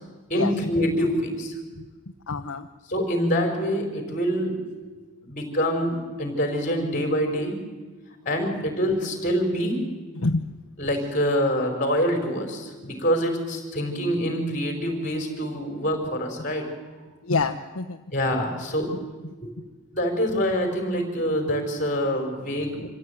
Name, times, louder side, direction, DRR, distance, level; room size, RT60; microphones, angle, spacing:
voice 1, 0.3-1.5 2.9-4.6 5.2-7.5 8.2-9.8 10.8-16.7 18.1-18.9 19.4-19.5 19.9-22.9, equal, 35° left, 4 dB, 4.8 m, -25 dB
voice 2, 2.3-2.7 8.4-8.5 10.1-10.4 17.2-18.0 22.7-22.9, left 3 dB, 75° left, 3 dB, 1.0 m, -27 dB
26.0 x 15.5 x 9.5 m, 1.3 s
head